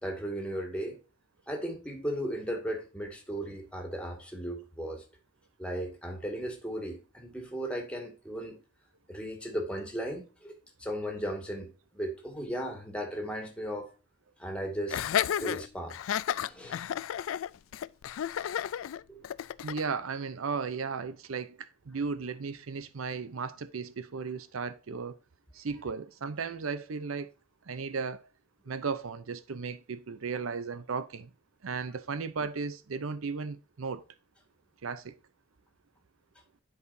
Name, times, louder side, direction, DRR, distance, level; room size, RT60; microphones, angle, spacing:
voice 1, 0.0-1.0 1.5-5.0 5.6-8.6 9.1-10.5 10.8-11.7 11.9-13.9 14.4-15.0 15.4-16.0 16.4-16.8 19.1-19.2, equal, 5° left, 2.0 m, -36 dB
Laughter, 14.9-19.9, left 10 dB, 75° left, 0.3 m, -32 dB
voice 2, 19.6-25.2 25.5-27.3 27.7-28.2 28.7-31.3 31.6-34.0 34.8-35.1, right 5 dB, 85° right, 0.6 m, -35 dB
10.5 x 4.9 x 2.6 m
head